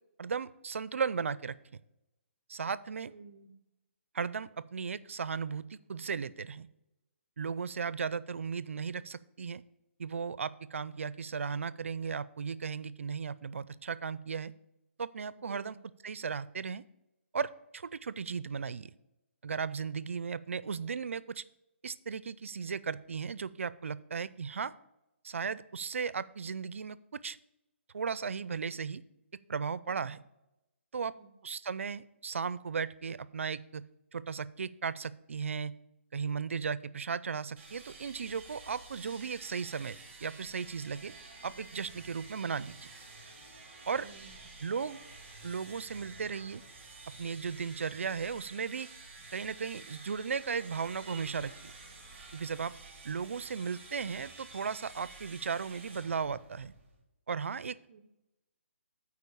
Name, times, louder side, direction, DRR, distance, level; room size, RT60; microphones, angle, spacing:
voice 1, 0.2-1.6 2.5-3.1 4.1-6.7 7.4-9.6 10.0-14.5 15.0-15.8 16.0-16.8 17.3-18.9 19.4-21.4 21.8-24.7 25.2-27.4 27.9-29.0 29.5-30.2 30.9-31.1 31.4-33.8 34.1-35.7 36.1-41.1 41.4-42.9 43.9-44.1 44.6-45.0 45.4-46.6 47.2-48.9 49.3-51.7 52.3-52.7 53.0-56.7 57.3-57.8, right 6 dB, 75° right, 18 dB, 0.5 m, -36 dB
voice 2, 3.0-3.5 15.5-15.8 29.9-30.1 31.0-31.3 43.9-44.5 57.9-58.0, right 5 dB, 35° right, 6 dB, 0.7 m, -53 dB
sound 1, 37.6-57.0, right 3 dB, 20° right, 2.1 m, -51 dB
8.4 x 4.7 x 6.8 m, 0.91 s
hypercardioid pair, 175°, 7 cm